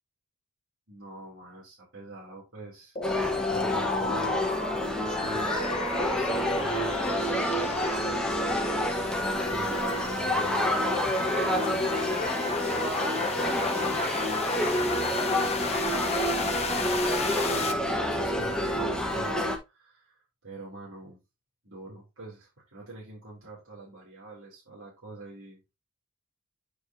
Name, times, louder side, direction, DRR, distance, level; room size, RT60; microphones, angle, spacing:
voice 1, 0.9-4.4 4.7-8.6 8.8-10.9 11.3-12.0 12.9-14.1 15.0-16.1 16.4-17.1 18.1-21.2 21.6-25.6, right 2 dB, 65° right, 3.3 m, -45 dB
sound 1, 3.0-17.7, left 4 dB, 30° left, 0.9 m, -34 dB
sound 2, 3.0-19.6, equal, 5° left, 1.1 m, -28 dB
9.4 x 4.6 x 2.7 m
head